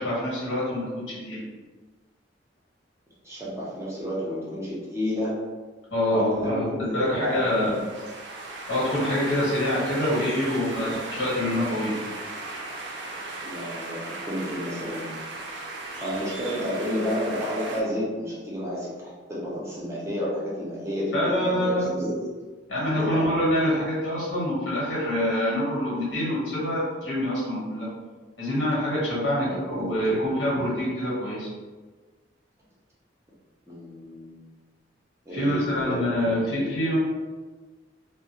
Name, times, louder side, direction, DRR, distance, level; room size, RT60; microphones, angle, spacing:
voice 1, 0.0-1.4 5.9-7.7 8.7-10.9 11.2-12.0 21.1-21.9 22.7-27.9 28.4-31.5 35.3-37.0, left 1 dB, 80° left, -8 dB, 1.1 m, -26 dB
voice 2, 3.2-5.4 6.1-6.8 7.2-7.8 10.4-10.5 10.8-10.9 13.4-15.2 16.0-22.2 23.0-23.2 29.3-30.2 33.7-34.4 35.3-36.1, equal, 15° right, -6 dB, 0.6 m, -31 dB
sound 1, 7.1-17.8, right 2 dB, 70° right, 0.4 m, -37 dB
2.3 x 2.0 x 2.8 m, 1.4 s
head